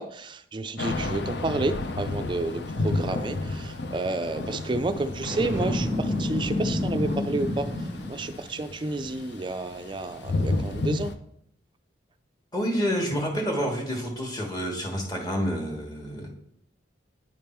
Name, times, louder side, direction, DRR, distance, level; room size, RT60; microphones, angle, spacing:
voice 1, 0.0-7.7 8.1-11.1, right 2 dB, 25° right, 9 dB, 0.4 m, -30 dB
Thunder / Rain, 0.8-11.1, left 2 dB, 60° left, 0.5 m, -32 dB
Boom, 5.2-8.4, left 1 dB, 75° left, 2.6 m, -29 dB
voice 2, 12.5-16.3, equal, 20° left, 0 dB, 1.3 m, -28 dB
9.4 x 3.5 x 4.4 m, 0.72 s
head